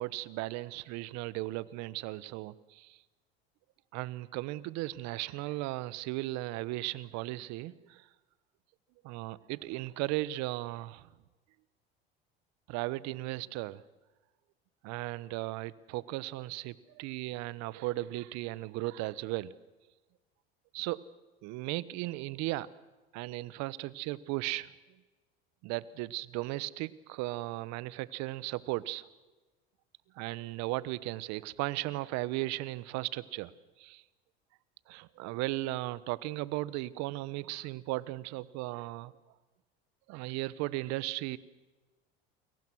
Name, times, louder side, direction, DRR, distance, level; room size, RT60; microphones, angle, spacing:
voice 1, 0.0-3.0 3.9-8.0 9.0-11.1 12.7-13.8 14.8-19.5 20.7-21.0 21.4-22.7 23.1-24.7 25.6-29.0 30.2-33.5 33.8-34.0 34.9-39.1 40.1-41.4, right 18 dB, 60° right, 19 dB, 1.2 m, -36 dB
29.5 x 22.5 x 6.3 m, 1.2 s
hypercardioid pair, 80°, 30 cm